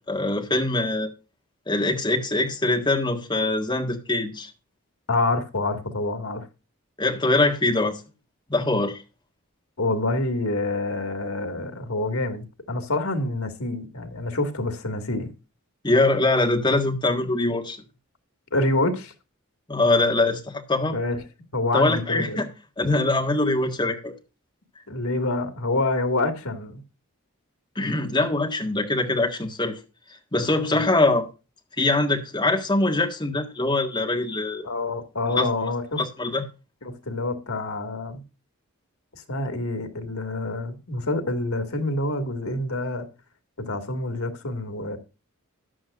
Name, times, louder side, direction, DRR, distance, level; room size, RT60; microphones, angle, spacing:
voice 1, 0.1-1.1 1.7-4.5 7.0-8.0 8.5-9.0 15.8-17.8 19.7-21.0 21.7-22.5 22.8-24.1 27.8-29.8 30.3-31.2 31.8-34.7 35.3-35.5 36.0-36.4, left 2 dB, 20° left, 1.7 m, -23 dB
voice 2, 5.1-6.4 9.8-15.3 18.5-19.1 20.9-21.2 21.5-22.4 24.9-26.8 30.7-30.8 34.6-36.0 36.8-38.2 39.1-43.1 43.6-45.0, left 2 dB, 85° left, 2.1 m, -27 dB
14.0 x 10.0 x 2.5 m
head